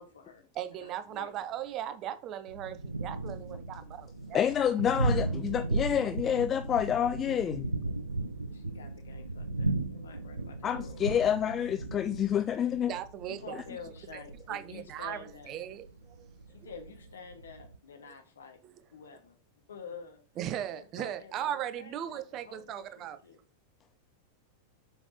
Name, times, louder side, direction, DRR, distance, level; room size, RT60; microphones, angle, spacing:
voice 1, 0.0-0.4 0.8-1.4 4.7-5.2 8.1-8.2 8.5-11.0 13.3-15.6 16.5-19.4 19.7-20.2 20.7-23.4, left 5 dB, 70° left, 1.4 m, -49 dB
voice 2, 0.5-4.4 12.9-13.6 14.1-14.2 14.5-16.3 16.6-16.7 18.6-18.7 20.4-23.2, right 11 dB, 35° right, 0.6 m, -38 dB
Thunder, 2.5-17.8, right 2 dB, 80° right, 0.5 m, -36 dB
voice 3, 4.3-7.7 10.6-12.9, left 9 dB, 25° left, 0.3 m, -28 dB
7.0 x 5.2 x 2.7 m
figure-of-eight pair, 90°, 0 cm